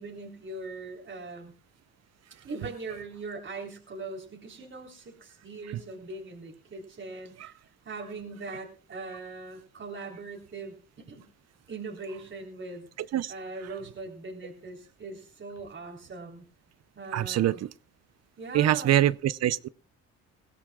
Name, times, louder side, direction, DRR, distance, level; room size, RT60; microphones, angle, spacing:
voice 1, 0.0-1.5 2.4-7.6 7.9-11.3 11.7-12.9 13.3-16.4 17.0-17.6 18.4-19.0, right 3 dB, 40° right, 3.6 m, -40 dB
voice 2, 17.1-17.7 18.5-19.7, right 12 dB, 60° right, 0.6 m, -24 dB
20.5 x 16.5 x 2.4 m
cardioid pair, 90°, 30 cm